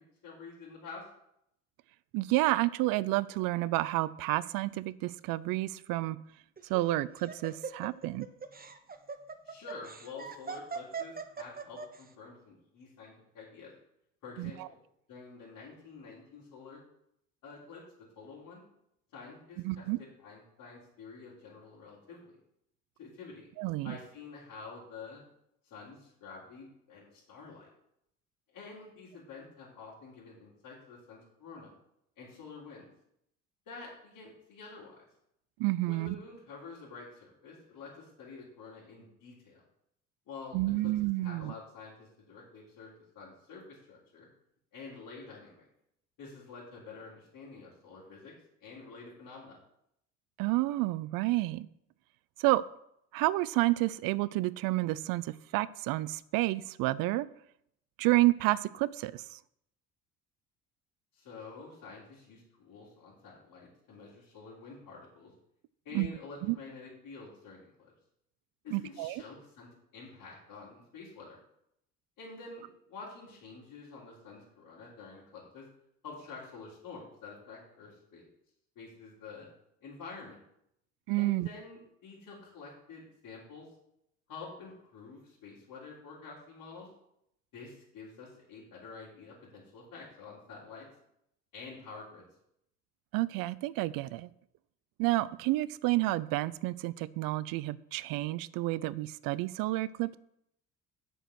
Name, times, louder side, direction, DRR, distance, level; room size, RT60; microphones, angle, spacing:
voice 1, 0.2-1.0 9.4-13.7 14.2-14.8 15.1-16.8 17.4-17.8 18.2-18.6 19.1-22.4 23.0-23.5 23.8-25.2 25.6-27.7 28.5-31.7 32.2-32.9 33.7-35.0 35.8-39.6 40.3-40.6 40.8-40.9 41.2-44.3 44.7-45.7 46.2-48.3 48.6-49.6 61.1-65.3 65.9-67.9 68.6-71.4 72.2-75.6 76.0-78.2 78.8-79.5 79.8-80.4 81.2-83.7 84.3-86.9 87.5-90.9 91.5-92.3, left 4 dB, 55° left, -7 dB, 3.7 m, -48 dB
voice 2, 2.1-6.2 6.7-8.3 14.4-14.7 19.6-20.0 23.6-24.0 35.6-36.1 40.5-41.5 50.4-51.7 52.4-52.6 53.1-57.3 58.0-59.4 65.9-66.1 66.4-66.6 68.7-69.2 81.1-81.5 93.1-94.3 95.0-100.2, right 18 dB, 65° right, 18 dB, 0.6 m, -30 dB
Laughter, 6.6-12.0, right 5 dB, 25° right, 1.2 m, -41 dB
7.9 x 6.2 x 6.4 m, 0.77 s
hypercardioid pair, 55°, 38 cm